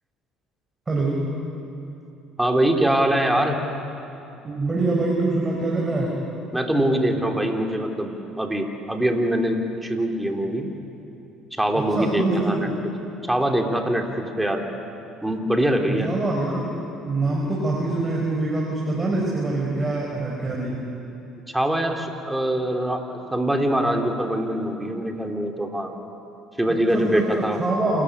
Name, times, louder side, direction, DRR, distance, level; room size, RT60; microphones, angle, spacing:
voice 1, 0.9-1.2 4.4-6.1 11.7-12.7 15.9-20.8 26.9-28.0, right 2 dB, 25° right, -3 dB, 4.8 m, -25 dB
voice 2, 2.4-3.6 6.5-10.7 11.5-12.7 13.3-14.6 15.2-16.1 21.5-25.9 26.6-27.6, right 1 dB, 10° right, 3 dB, 3.3 m, -23 dB
27.0 x 14.0 x 10.0 m, 2.8 s
hypercardioid pair, 65°, 0 cm